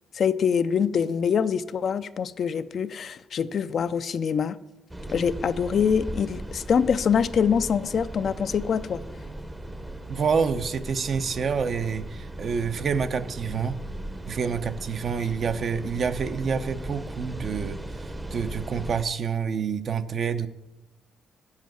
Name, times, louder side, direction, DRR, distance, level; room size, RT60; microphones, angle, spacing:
voice 1, 0.2-4.6 5.1-9.0, left 7 dB, 55° left, 0.4 m, -24 dB
sound 1, 4.9-19.0, right 1 dB, 10° right, 0.7 m, -37 dB
voice 2, 10.1-13.8 14.3-17.8 18.3-20.5, right 6 dB, 50° right, 0.7 m, -27 dB
7.5 x 7.3 x 7.6 m
cardioid pair, 90°, 0 cm